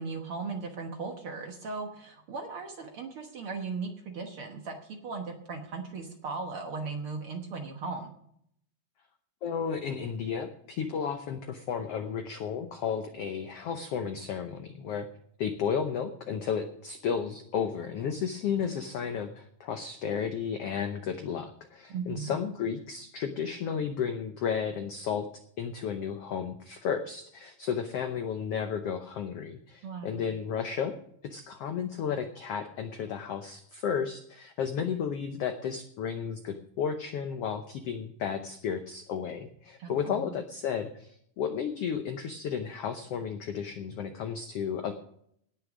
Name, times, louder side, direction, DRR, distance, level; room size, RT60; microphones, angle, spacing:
voice 1, 0.0-8.1 21.9-22.4 29.8-30.2 39.8-40.3, right 4 dB, 55° right, 3 dB, 1.6 m, -37 dB
voice 2, 9.4-15.1 15.4-25.3 25.6-30.9 31.2-44.9, left 7 dB, 80° left, 7 dB, 1.3 m, -33 dB
18.5 x 6.8 x 5.0 m, 0.69 s
omnidirectional pair, 3.9 m